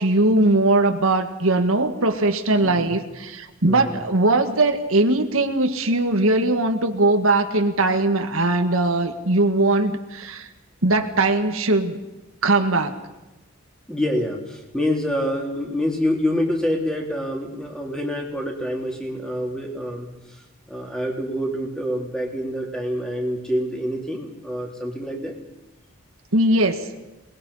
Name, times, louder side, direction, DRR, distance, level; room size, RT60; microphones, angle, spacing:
voice 1, 0.0-10.5 10.8-12.0 12.4-13.0 26.3-26.9, right 2 dB, 75° right, 6 dB, 1.9 m, -20 dB
voice 2, 2.6-2.9 3.7-4.0 13.9-25.4, equal, 5° left, 0 dB, 3.4 m, -27 dB
27.0 x 20.5 x 5.7 m, 1.0 s
head